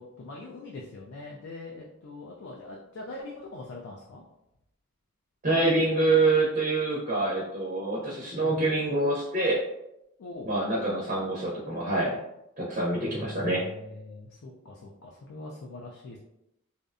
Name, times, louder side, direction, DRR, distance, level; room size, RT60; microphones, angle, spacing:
voice 1, 0.0-4.2 8.4-8.6 10.2-10.5 12.9-16.2, left 2 dB, 65° left, -2 dB, 0.4 m, -42 dB
voice 2, 5.4-9.6 10.4-12.2 12.6-13.7, right 2 dB, 35° right, -5 dB, 0.5 m, -26 dB
2.6 x 2.1 x 2.4 m, 0.84 s
head